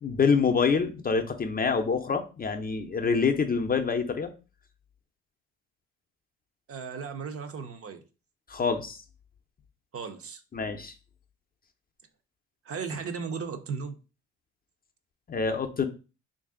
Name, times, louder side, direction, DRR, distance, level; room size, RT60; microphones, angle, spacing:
voice 1, 0.0-4.3 8.5-9.0 10.5-10.9 15.3-15.9, left 5 dB, 30° left, 0.5 m, -26 dB
voice 2, 6.7-8.0 9.9-10.4 12.6-14.0, right 5 dB, 50° right, 0.6 m, -36 dB
3.2 x 2.6 x 3.6 m
cardioid pair, 90°, 30 cm